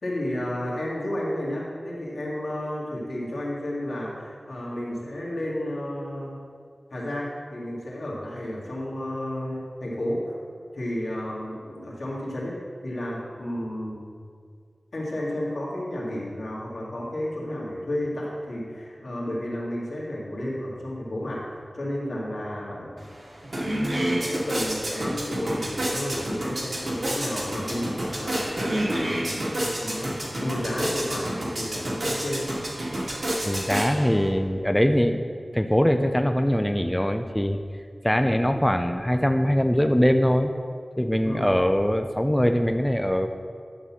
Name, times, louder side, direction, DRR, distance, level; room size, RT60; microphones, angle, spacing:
voice 1, 0.0-6.4 6.9-10.3 10.7-14.1 14.9-23.0 23.9-32.4 41.2-41.5, left 1 dB, 85° left, -5 dB, 2.2 m, -32 dB
sound 1, 23.0-23.1 23.4-34.3, right 1 dB, 60° right, 2.4 m, -29 dB
voice 2, 33.4-35.2 35.5-37.6 38.0-40.5 41.0-43.3, equal, 10° left, 6 dB, 0.5 m, -22 dB
11.0 x 4.1 x 7.3 m, 2.2 s
wide cardioid pair, 55°, 0 cm